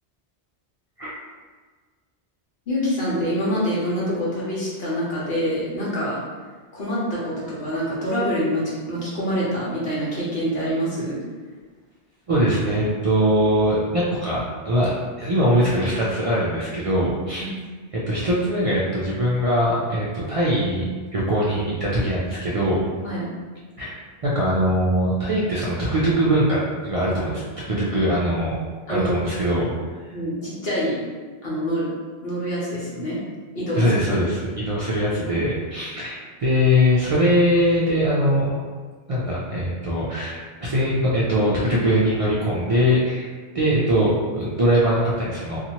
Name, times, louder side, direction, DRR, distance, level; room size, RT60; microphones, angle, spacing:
voice 1, 2.7-6.2 6.7-11.2 17.4-17.5 23.0-23.3 28.9-29.1 30.1-31.0 31.4-33.2 33.5-33.9, equal, 60° left, -7 dB, 1.2 m, -26 dB
voice 2, 12.3-17.5 17.9-22.8 23.8-24.0 24.2-27.4 27.7-28.6 28.9-29.7 33.7-38.6 39.1-43.3 43.5-45.6, equal, 55° right, -7 dB, 0.4 m, -21 dB
2.7 x 2.4 x 2.8 m, 1.5 s
omnidirectional pair, 1.1 m